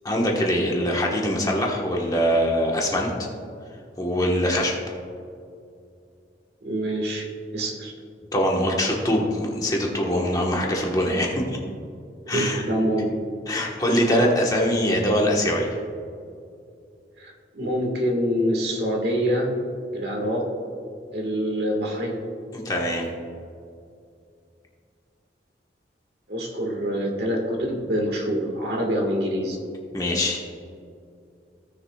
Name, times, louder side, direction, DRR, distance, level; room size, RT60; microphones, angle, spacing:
voice 1, 0.0-3.1 4.0-4.7 8.3-11.6 12.3-12.6 13.5-15.8 22.5-23.1 29.9-30.5, equal, 20° left, -1 dB, 1.3 m, -23 dB
voice 2, 6.6-7.3 7.5-7.9 12.3-13.1 17.2-19.5 19.9-20.5 21.1-22.2 26.3-29.6, equal, 65° right, 0 dB, 1.8 m, -25 dB
17.0 x 6.7 x 2.4 m, 2.4 s
head